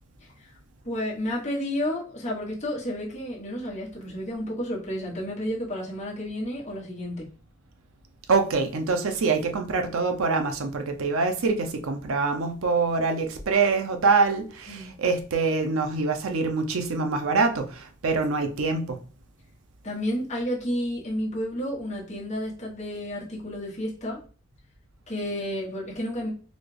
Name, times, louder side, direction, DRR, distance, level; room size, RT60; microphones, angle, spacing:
voice 1, 0.8-7.3 14.7-14.9 19.8-24.2 25.1-26.3, equal, 35° left, 1.3 m, -31 dB
voice 2, 8.3-19.0, right 4 dB, 85° right, 0.6 m, -25 dB
4.0 x 2.4 x 3.3 m
head